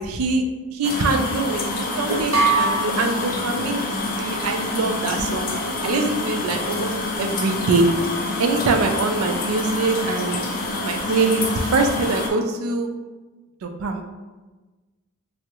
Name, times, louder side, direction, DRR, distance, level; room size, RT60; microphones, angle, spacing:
voice 1, 0.0-5.5 5.8-6.9 7.2-8.0 8.4-10.4 10.8-12.9 13.6-14.0, right 3 dB, 85° right, 5 dB, 0.4 m, -23 dB
sound 1, 0.8-12.3, left 2 dB, 40° left, 0.4 m, -27 dB
sound 2, 2.3-4.1, right 3 dB, 60° right, 0.9 m, -23 dB
3.4 x 2.0 x 2.9 m, 1.2 s
head